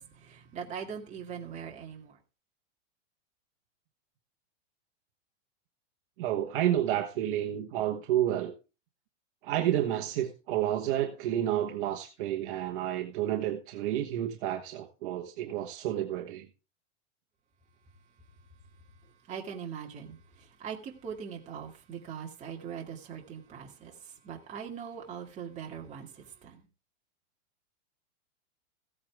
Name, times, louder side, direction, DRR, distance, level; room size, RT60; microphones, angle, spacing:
voice 1, 0.0-2.2 19.3-26.6, right 7 dB, 20° right, 2.3 m, -41 dB
voice 2, 6.2-8.5 9.4-16.5, right 12 dB, 45° right, 1.4 m, -30 dB
15.5 x 8.7 x 3.6 m
supercardioid pair, 160°, 36 cm